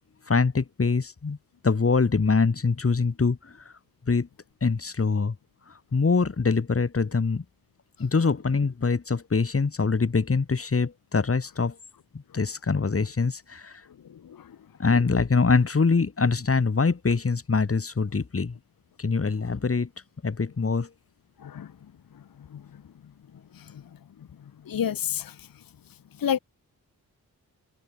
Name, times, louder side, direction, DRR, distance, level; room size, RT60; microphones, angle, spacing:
voice 1, 0.3-1.4 1.6-3.5 4.1-4.3 4.6-5.3 5.9-7.4 8.0-11.7 12.3-13.8 14.8-18.6 19.0-19.9 20.2-20.9, left 4 dB, 35° left, 1.4 m, -24 dB
voice 2, 24.7-25.3 26.2-26.4, left 9 dB, 60° left, 0.8 m, -27 dB
cardioid pair, 40°, 39 cm